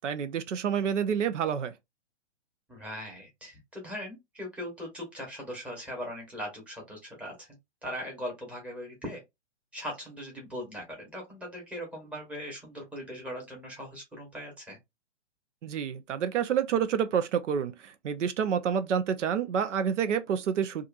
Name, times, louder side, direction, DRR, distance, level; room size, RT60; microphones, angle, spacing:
voice 1, 0.0-1.7 15.6-20.9, right 8 dB, 85° right, 0.6 m, -28 dB
voice 2, 2.7-7.5 7.8-9.2 9.7-14.8, equal, 5° right, 1.1 m, -40 dB
2.7 x 2.4 x 2.4 m
hypercardioid pair, 145°, 36 cm